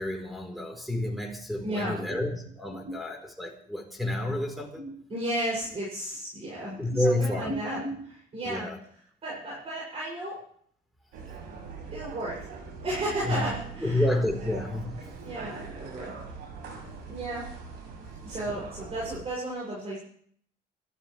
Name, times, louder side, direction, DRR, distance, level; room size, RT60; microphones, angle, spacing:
voice 1, 0.0-4.8 6.8-7.5 8.4-8.8 13.2-13.5 13.8-15.0, left 1 dB, ahead, 3 dB, 4.1 m, -29 dB
voice 2, 1.6-2.2 2.8-3.0 4.3-4.4 4.7-8.7 9.2-10.4 11.9-12.5 12.8-14.1 15.2-16.1 17.1-17.5 18.2-20.0, right 1 dB, 35° right, -5 dB, 7.1 m, -33 dB
sound 1, 11.1-19.2, right 5 dB, 85° right, 6.9 m, -42 dB
27.5 x 12.5 x 3.4 m, 0.62 s
cardioid pair, 110°, 17 cm